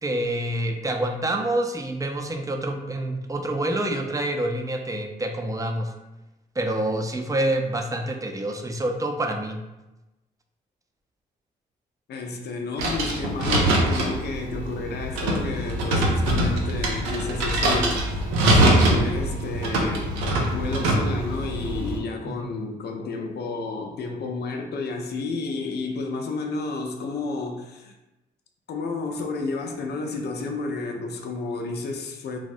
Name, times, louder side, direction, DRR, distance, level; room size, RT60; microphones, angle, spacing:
voice 1, 0.0-5.9 6.6-9.6 22.2-22.5, right 1 dB, 15° right, 3 dB, 0.5 m, -27 dB
voice 2, 12.1-18.1 18.5-20.1 20.5-28.0 28.7-32.4, left 3 dB, 55° left, 3 dB, 0.5 m, -31 dB
sound 1, 12.8-22.0, right 1 dB, 85° right, 0.5 m, -23 dB
3.4 x 2.0 x 2.6 m, 1.0 s
hypercardioid pair, 40°, 20 cm